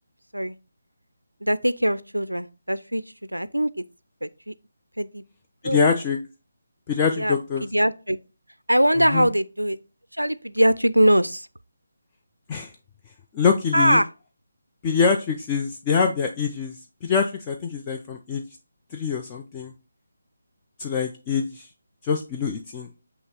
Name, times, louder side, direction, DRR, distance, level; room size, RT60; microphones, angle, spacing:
voice 1, 1.4-3.0 3.3-3.7 4.2-4.5 5.0-5.2 5.6-5.8 7.2-8.2 8.7-9.8 10.2-11.5 13.7-14.1, equal, 85° right, 0.3 m, -22 dB
voice 2, 5.6-6.2 6.9-7.7 9.0-9.3 12.5-12.7 13.3-14.0 14.8-16.8 17.0-18.4 18.9-19.7 20.8-21.7 22.0-22.9, left 5 dB, 20° left, 0.3 m, -24 dB
6.6 x 2.9 x 2.8 m
figure-of-eight pair, 150°, 0 cm